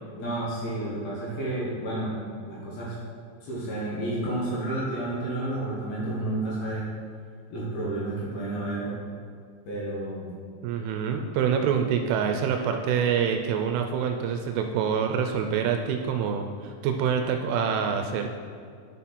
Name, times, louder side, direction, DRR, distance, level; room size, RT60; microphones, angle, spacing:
voice 1, 0.2-2.1 2.4-3.0 3.4-6.9 7.5-9.0 9.6-10.3, right 1 dB, 60° left, -6 dB, 3.0 m, -31 dB
voice 2, 10.6-18.3, right 7 dB, 85° right, 4 dB, 2.9 m, -26 dB
10.5 x 5.8 x 4.2 m, 2.2 s
omnidirectional pair, 5.7 m